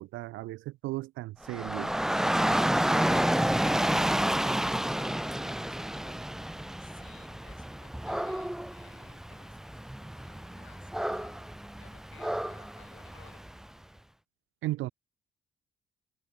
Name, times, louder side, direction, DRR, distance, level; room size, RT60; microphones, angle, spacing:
voice 1, 0.0-1.9 14.6-14.9, right 18 dB, 85° right, 0.4 m, -35 dB
Dog / Rain, 1.4-13.6, right 1 dB, ahead, 0.4 m, -30 dB
voice 2, 2.4-13.4, left 11 dB, 70° left, 6.2 m, -59 dB
cardioid pair, 90°, 20 cm